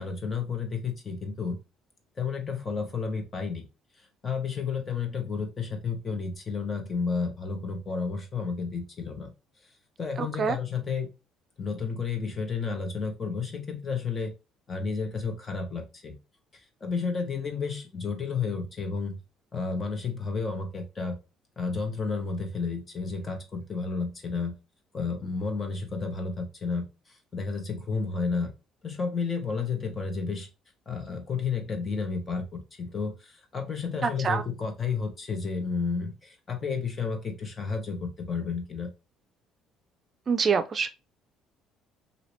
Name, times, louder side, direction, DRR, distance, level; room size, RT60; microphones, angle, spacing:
voice 1, 0.0-1.6 2.2-3.6 4.2-9.3 10.0-11.1 11.6-14.3 14.7-16.2 16.8-19.2 19.5-21.2 21.6-24.5 24.9-26.8 27.3-28.5 28.8-30.5 30.9-38.9, left 5 dB, 35° left, 1.0 m, -31 dB
voice 2, 10.2-10.6 34.0-34.4 40.3-40.9, right 6 dB, 40° right, 0.4 m, -26 dB
2.9 x 2.7 x 3.0 m
supercardioid pair, 85°, 0 cm